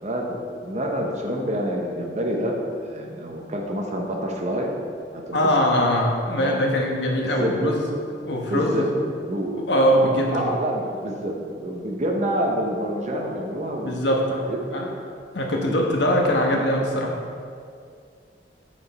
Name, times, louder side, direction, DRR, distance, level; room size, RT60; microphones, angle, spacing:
voice 1, 0.0-4.7 5.1-5.4 5.7-5.9 6.4-6.6 7.4-7.7 8.5-9.6 10.3-14.0 14.5-14.6 15.7-15.8 16.5-16.7, equal, 40° right, 0 dB, 1.0 m, -27 dB
voice 2, 5.3-7.8 8.3-8.9 9.7-10.6 13.8-14.9 15.3-17.1, equal, 75° left, 0 dB, 1.2 m, -22 dB
8.9 x 5.1 x 4.2 m, 2.3 s
head